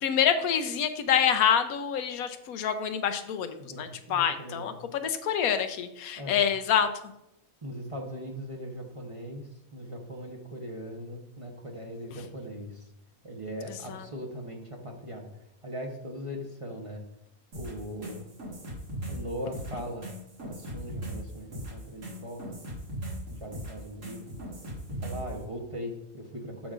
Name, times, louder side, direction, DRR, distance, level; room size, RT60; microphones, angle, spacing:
voice 1, 0.0-6.9 12.2-12.3 13.7-14.1, left 8 dB, 85° left, 9 dB, 1.1 m, -27 dB
voice 2, 3.6-4.8 6.2-6.4 7.6-12.8 13.2-15.2 15.6-17.0 17.5-18.3 19.1-20.1 20.4-22.4 23.4-24.2 25.0-26.7, equal, 25° right, 0 dB, 0.9 m, -39 dB
sound 1, 17.5-25.4, right 1 dB, 60° right, 2.2 m, -38 dB
13.0 x 5.1 x 2.5 m, 0.84 s
omnidirectional pair, 1.5 m